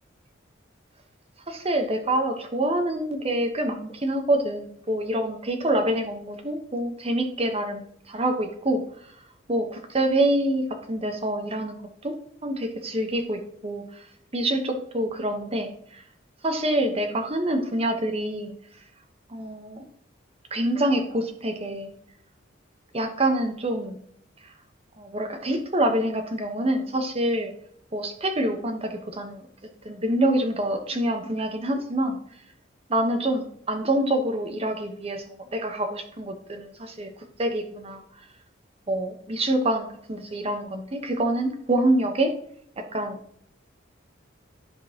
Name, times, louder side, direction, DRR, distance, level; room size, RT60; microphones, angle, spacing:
voice 1, 1.5-8.8 9.5-12.1 12.4-13.8 14.3-16.0 16.4-18.5 19.3-19.8 20.5-21.9 22.9-24.0 25.0-27.5 27.9-29.4 29.8-32.2 32.9-37.1 37.4-38.0 38.9-42.3 42.8-43.2, right 1 dB, 30° right, 5 dB, 1.1 m, -26 dB
10.5 x 5.4 x 2.9 m, 0.68 s
head